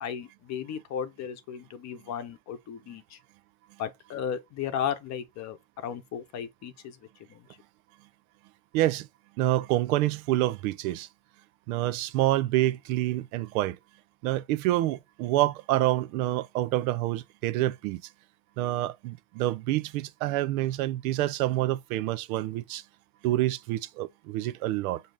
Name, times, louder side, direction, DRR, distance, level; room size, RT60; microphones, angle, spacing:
voice 1, 0.0-3.2 3.8-5.6 5.8-7.0 7.3-7.4, left 8 dB, 40° left, 0.8 m, -35 dB
voice 2, 8.7-9.1 9.4-11.1 11.7-13.8 14.2-18.0 18.6-22.8 23.2-25.0, right 15 dB, 75° right, 0.6 m, -27 dB
5.1 x 2.0 x 3.7 m
supercardioid pair, 110°, 43 cm